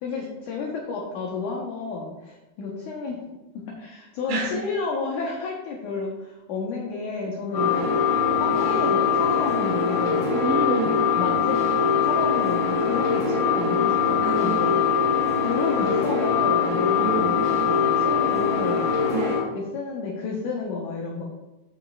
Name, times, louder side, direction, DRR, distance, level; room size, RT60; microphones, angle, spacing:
voice 1, 0.0-3.2 3.5-10.3 11.2-11.6 12.0-14.8 15.4-18.8 19.5-21.2, left 4 dB, 70° left, -2 dB, 1.9 m, -31 dB
voice 2, 4.3-4.6 10.3-11.1 14.2-14.7 16.9-17.3 19.1-19.4, right 3 dB, 80° right, -2 dB, 3.7 m, -28 dB
sound 1, 7.5-19.4, left 6 dB, 35° left, 2.8 m, -22 dB
15.0 x 5.6 x 2.4 m, 1.0 s
omnidirectional pair, 4.7 m